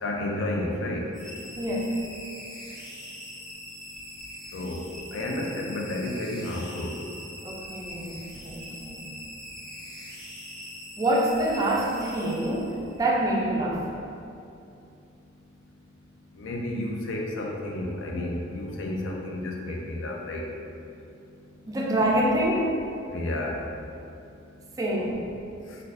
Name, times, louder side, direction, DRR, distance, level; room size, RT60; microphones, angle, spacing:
voice 1, 0.0-1.0 4.5-4.8 5.1-6.9 16.4-20.4 23.1-23.6, left 1 dB, 70° left, -1 dB, 0.4 m, -31 dB
sound 1, 1.1-13.0, equal, 25° left, 0.7 m, -42 dB
voice 2, 1.6-1.9 7.4-9.1 11.0-13.9 21.7-22.7 24.8-25.2, right 1 dB, 20° right, -3 dB, 0.3 m, -26 dB
4.0 x 2.2 x 2.4 m, 2.6 s
head